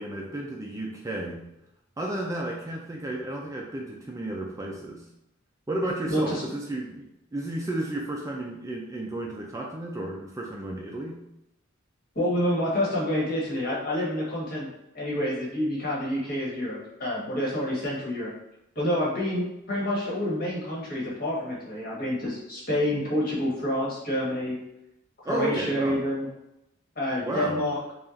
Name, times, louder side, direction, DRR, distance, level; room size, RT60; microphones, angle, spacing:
voice 1, 0.0-1.4 2.0-5.0 5.7-7.0 7.3-11.2 25.2-26.0 27.2-27.6, right 1 dB, 15° right, -1 dB, 0.4 m, -32 dB
voice 2, 6.1-6.4 12.1-14.7 14.9-18.3 18.7-24.6 25.3-26.3 26.9-27.9, left 1 dB, 45° left, -6 dB, 1.4 m, -28 dB
5.3 x 2.4 x 2.5 m, 0.86 s
head